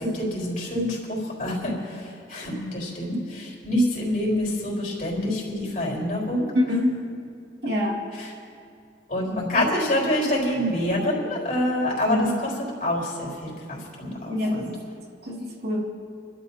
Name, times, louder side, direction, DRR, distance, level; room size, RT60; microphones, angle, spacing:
voice 1, 0.0-6.5 8.2-8.3 9.1-14.7, left 1 dB, 45° left, -3 dB, 4.5 m, -26 dB
voice 2, 6.7-7.0 7.6-8.0 12.1-12.4 14.3-14.8 15.3-15.8, left 1 dB, 65° right, -3 dB, 2.4 m, -26 dB
29.0 x 12.5 x 2.8 m, 2.4 s
head